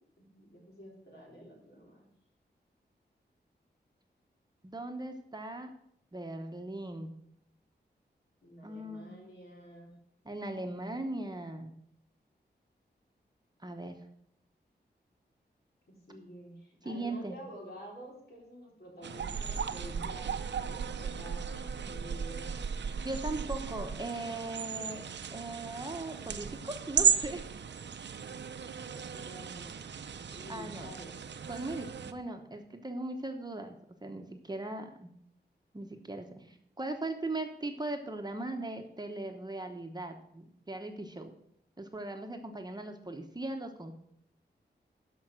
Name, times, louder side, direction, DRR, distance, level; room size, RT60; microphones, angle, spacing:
voice 1, 0.2-2.1 8.4-10.0 15.9-20.3 20.6-22.7 28.8-31.1, equal, 65° left, -3 dB, 4.4 m, -49 dB
voice 2, 4.6-5.7 6.1-7.1 8.6-9.2 10.2-11.7 13.6-14.0 16.8-17.3 23.0-25.0 25.3-27.4 30.5-30.9 31.5-35.1 35.7-41.3 41.8-43.9, right 2 dB, 20° right, 4 dB, 1.0 m, -39 dB
sound 1, 19.0-32.1, right 7 dB, 80° right, 0.6 m, -35 dB
13.0 x 5.4 x 6.2 m, 0.72 s
wide cardioid pair, 120°, 18 cm